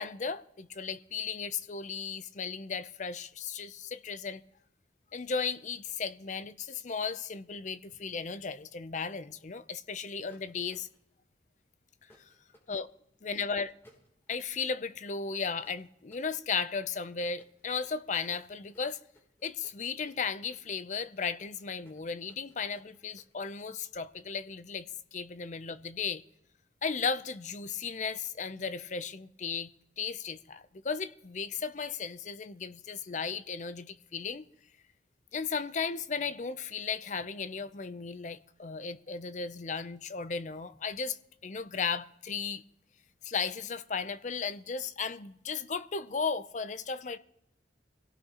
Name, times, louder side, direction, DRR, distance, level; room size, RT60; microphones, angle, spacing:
voice 1, 0.0-4.4 5.1-10.9 12.7-12.9 13.2-13.7 14.3-19.0 19.4-24.9 25.1-26.2 26.8-29.7 30.0-34.4 35.3-42.6 43.2-47.2, left 5 dB, 40° left, 0.5 m, -35 dB
sound 1, 10.3-11.1 12.1-12.7 13.8-14.5 15.6-23.3, equal, 15° left, 3.2 m, -63 dB
24.5 x 17.0 x 2.9 m
head